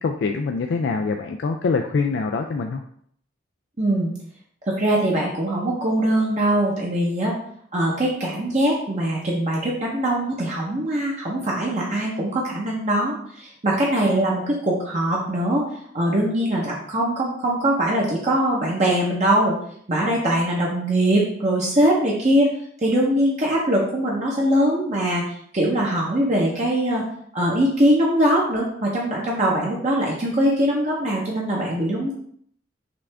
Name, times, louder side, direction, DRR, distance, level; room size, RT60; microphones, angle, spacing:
voice 1, 0.0-2.8, left 4 dB, 65° left, 4 dB, 0.3 m, -24 dB
voice 2, 3.8-4.1 4.7-7.3 7.7-15.7 15.9-19.5 19.9-22.5 22.8-25.2 25.5-27.0 27.3-32.1, right 1 dB, 40° right, -3 dB, 0.8 m, -22 dB
5.8 x 2.5 x 3.4 m, 0.65 s
head